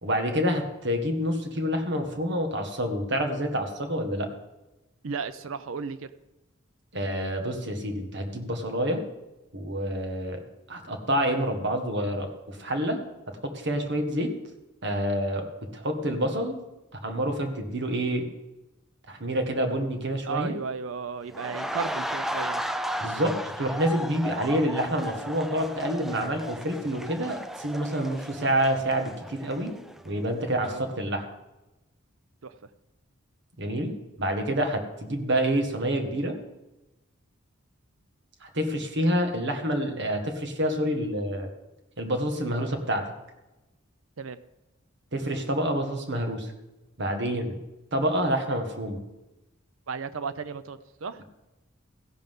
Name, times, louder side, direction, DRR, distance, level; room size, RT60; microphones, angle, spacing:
voice 1, 0.0-4.3 6.9-9.0 9.5-10.4 10.7-13.0 13.3-14.3 14.8-15.5 15.7-16.6 16.9-18.3 19.1-20.5 23.0-29.7 30.0-31.2 33.6-36.3 38.4-41.5 42.0-43.1 45.1-46.5 47.0-47.6 47.9-49.0, equal, 60° right, 4 dB, 1.7 m, -28 dB
voice 2, 5.0-6.0 20.3-22.7 30.5-30.8 32.4-32.6 44.2-44.4 49.9-51.2, right 5 dB, 75° right, 13 dB, 0.6 m, -34 dB
sound 1, 21.3-30.2 30.5-30.7, equal, ahead, 0.4 m, -35 dB
15.5 x 11.0 x 3.7 m, 1.0 s
head